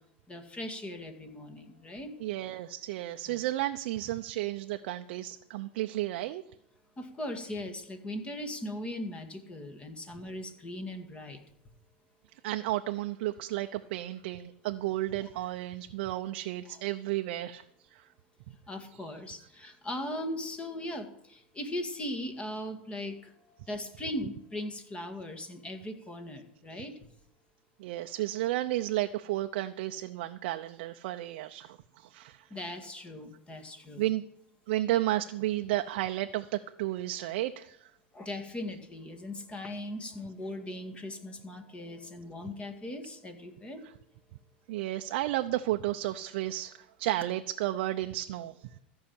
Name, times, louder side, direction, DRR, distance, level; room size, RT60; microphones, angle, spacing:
voice 1, 0.3-2.1 3.3-3.4 7.0-11.4 16.7-16.8 18.7-23.3 23.7-26.9 32.5-34.0 38.1-43.8, left 1 dB, 20° left, 6 dB, 2.0 m, -39 dB
voice 2, 2.2-6.4 12.4-17.6 17.9-18.0 27.8-32.5 34.0-34.2 34.7-37.9 44.7-46.7 47.0-48.5, right 15 dB, 65° right, 6 dB, 0.6 m, -32 dB
14.0 x 5.7 x 8.7 m, 0.75 s
supercardioid pair, 120°, 6 cm